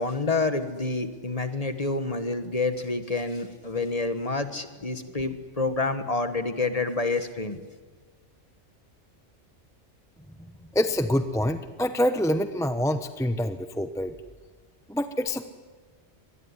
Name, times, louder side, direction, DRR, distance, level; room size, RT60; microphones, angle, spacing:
voice 1, 0.0-7.6, left 3 dB, 30° left, 9 dB, 1.5 m, -28 dB
voice 2, 10.7-14.1 14.9-15.5, left 1 dB, 5° left, 9 dB, 0.9 m, -26 dB
24.5 x 20.0 x 9.8 m, 1.4 s
omnidirectional pair, 1.2 m